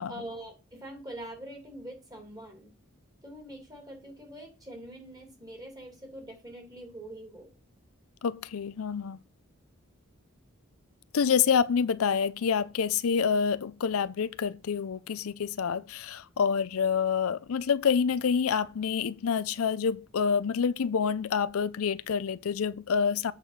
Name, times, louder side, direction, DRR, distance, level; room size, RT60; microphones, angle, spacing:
voice 1, 0.1-2.7 3.2-7.5, right 1 dB, 15° right, 2.7 m, -44 dB
voice 2, 8.2-9.2 11.1-23.3, left 6 dB, 80° left, 0.5 m, -27 dB
8.2 x 5.0 x 5.9 m
head